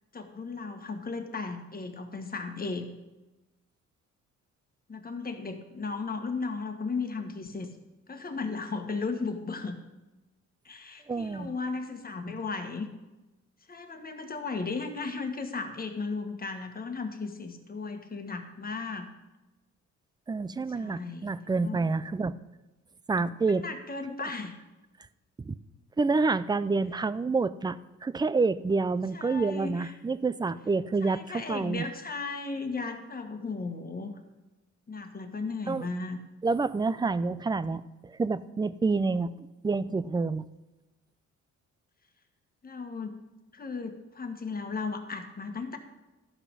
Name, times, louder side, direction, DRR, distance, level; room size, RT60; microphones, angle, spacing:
voice 1, 0.1-2.9 4.9-7.7 8.1-9.7 10.6-12.9 13.7-19.1 20.8-21.3 21.6-21.8 23.6-24.5 29.1-29.9 31.0-34.1 34.9-36.2 42.6-43.2 43.5-45.8, left 4 dB, 30° left, 5 dB, 1.5 m, -35 dB
voice 2, 11.1-11.5 20.3-22.3 23.1-23.6 25.4-25.6 26.0-31.9 35.7-35.9 36.4-40.5, right 4 dB, 15° right, 16 dB, 0.4 m, -28 dB
13.0 x 5.8 x 5.4 m, 1.1 s
cardioid pair, 90°, 30 cm